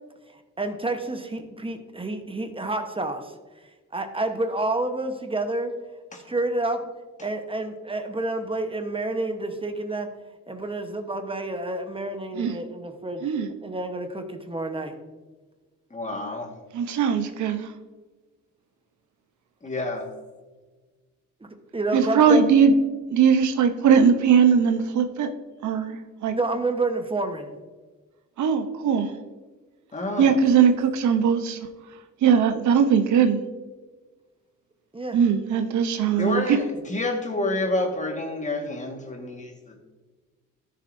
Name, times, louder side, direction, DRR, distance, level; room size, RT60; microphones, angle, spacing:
voice 1, 0.6-3.3 3.9-5.7 6.2-6.9 7.2-10.1 10.5-15.0 21.7-22.5 26.3-27.5 34.9-35.2, right 2 dB, 20° right, 6 dB, 1.1 m, -29 dB
voice 2, 15.9-16.5 19.6-20.0 29.9-30.4 36.2-36.6 36.9-39.8, left 2 dB, 25° left, 3 dB, 1.7 m, -28 dB
voice 3, 16.7-17.7 21.9-22.7 23.1-25.3 25.6-26.3 28.4-29.1 30.2-31.6 32.2-33.4 35.1-36.4, right 7 dB, 75° right, 8 dB, 0.9 m, -20 dB
13.5 x 6.8 x 2.7 m, 1.3 s
cardioid pair, 90°, 30 cm